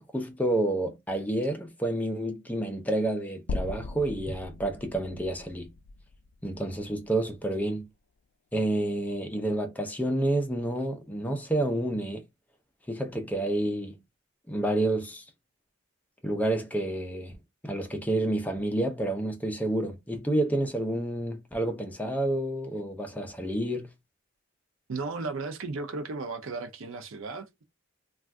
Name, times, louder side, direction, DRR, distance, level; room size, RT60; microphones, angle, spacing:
voice 1, 0.0-5.7 6.4-7.9 8.5-12.2 12.9-14.0 14.5-15.2 16.2-17.3 17.6-23.9, right 1 dB, 10° left, 0.5 m, -29 dB
sound 1, 3.5-7.7, left 3 dB, 75° left, 0.4 m, -39 dB
voice 2, 24.9-27.6, right 3 dB, 80° right, 0.5 m, -35 dB
2.5 x 2.3 x 3.4 m
head